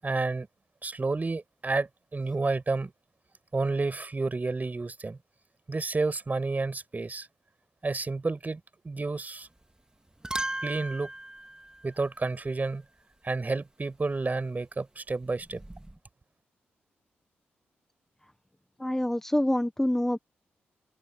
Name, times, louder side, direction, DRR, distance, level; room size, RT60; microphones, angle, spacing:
voice 1, 0.0-0.5 0.8-2.9 3.5-5.2 5.7-7.3 7.8-9.5 10.6-11.1 11.8-12.8 13.2-15.6, right 3 dB, 35° right, 7.5 m, -30 dB
sound 1, 9.5-9.8 10.1-12.6 15.1-16.0, right 1 dB, 15° right, 2.0 m, -38 dB
voice 2, 18.8-20.2, left 1 dB, 10° left, 1.4 m, -26 dB
supercardioid pair, 45°, 5 cm